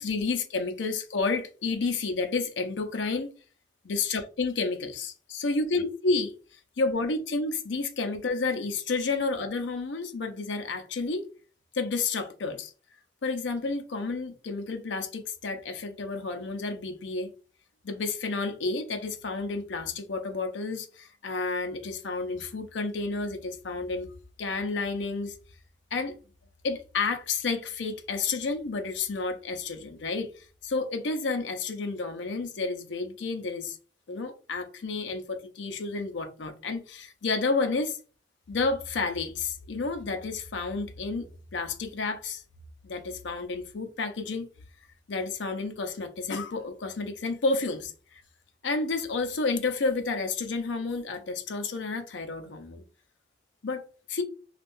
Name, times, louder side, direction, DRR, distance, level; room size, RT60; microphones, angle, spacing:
voice 1, 0.0-3.3 3.8-11.2 11.7-12.7 13.2-17.3 17.8-24.1 24.4-25.4 25.9-26.2 26.6-33.8 34.1-38.0 38.5-41.3 41.5-42.4 42.8-44.5 45.1-48.2 48.6-52.8 53.6-54.2, left 3 dB, 85° left, 0.6 m, -30 dB
2.5 x 2.3 x 3.5 m
head